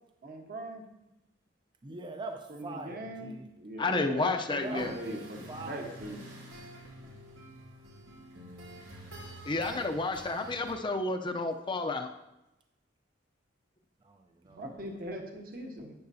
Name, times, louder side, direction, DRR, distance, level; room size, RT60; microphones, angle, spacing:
voice 1, 0.2-0.8 2.5-6.5 14.5-15.9, right 1 dB, 50° right, 2 dB, 1.3 m, -41 dB
voice 2, 1.8-3.5 4.6-5.0 5.5-6.2 14.0-14.6, right 3 dB, 25° right, 4 dB, 0.5 m, -43 dB
voice 3, 3.8-4.9 9.5-12.1, left 3 dB, 25° left, 6 dB, 0.6 m, -30 dB
acoustic guitar improvisation by the Cantabrian Sea, 4.6-10.7, right 1 dB, 85° right, 2.7 m, -48 dB
11.5 x 8.5 x 2.8 m, 0.94 s
head